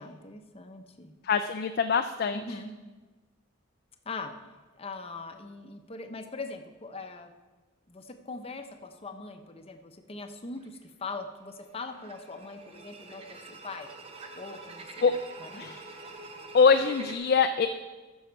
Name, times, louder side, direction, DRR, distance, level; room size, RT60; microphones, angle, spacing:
voice 1, 0.0-1.1 2.3-2.7 4.1-4.3 4.7-7.3 7.9-13.9 14.3-15.8, left 3 dB, 30° left, 6 dB, 0.7 m, -41 dB
voice 2, 1.3-2.4 15.0-15.1 15.6-15.8 16.5-17.7, left 5 dB, 50° left, 7 dB, 0.4 m, -23 dB
sound 1, 10.6-10.8 11.6-17.2, right 3 dB, 30° right, 0.9 m, -46 dB
14.5 x 6.3 x 4.6 m, 1.3 s
head